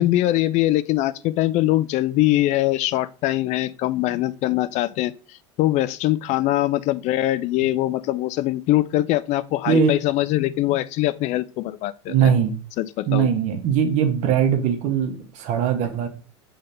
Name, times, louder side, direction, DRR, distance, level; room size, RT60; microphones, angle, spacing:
voice 1, 0.0-12.3 12.8-13.3, left 15 dB, 50° left, 0.4 m, -22 dB
voice 2, 12.1-12.5 13.1-16.1, right 7 dB, 55° right, 1.3 m, -20 dB
5.5 x 3.5 x 5.4 m
hypercardioid pair, 90°, 15 cm